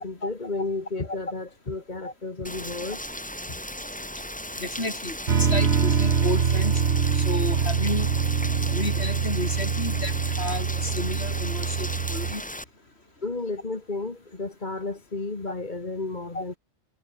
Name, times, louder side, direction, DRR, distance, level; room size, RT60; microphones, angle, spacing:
voice 1, 0.0-3.0 13.2-16.5, left 3 dB, 40° left, 2.1 m, -32 dB
Rain, 2.4-12.6, left 1 dB, 5° left, 2.2 m, -36 dB
voice 2, 4.6-6.7 7.1-8.1 8.7-12.4 16.3-16.4, left 2 dB, 60° left, 5.6 m, -32 dB
sound 1, 5.3-12.3, right 6 dB, 65° right, 1.6 m, -24 dB
omnidirectional pair, 1.2 m